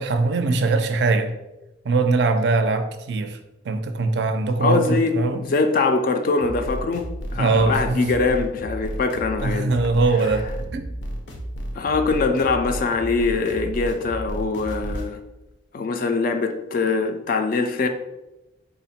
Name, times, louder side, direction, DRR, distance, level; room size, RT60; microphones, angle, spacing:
voice 1, 0.0-1.3 1.8-3.4 3.6-5.4 7.4-8.1 9.4-10.9, right 3 dB, 60° right, 0.4 m, -21 dB
voice 2, 4.6-9.7 10.2-10.4 11.8-15.2 15.7-17.9, left 4 dB, 45° left, 0.3 m, -23 dB
sound 1, 6.4-15.1, right 1 dB, 80° left, 0.7 m, -32 dB
3.7 x 2.1 x 4.1 m
head